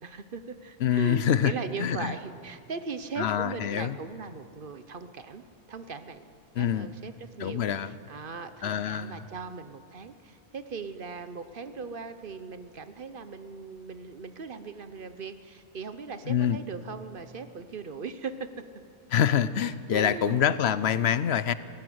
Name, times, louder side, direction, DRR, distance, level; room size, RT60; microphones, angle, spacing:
voice 1, 0.0-5.4 5.7-6.2 6.6-18.6 19.9-20.4, right 5 dB, 55° right, 11 dB, 1.1 m, -39 dB
voice 2, 0.8-1.5 1.8-2.1 3.2-4.0 6.6-6.9 7.4-7.9 8.6-9.2 16.3-16.6 19.1-21.5, left 9 dB, 70° left, 15 dB, 0.9 m, -25 dB
19.0 x 14.5 x 9.4 m, 2.4 s
omnidirectional pair, 1.1 m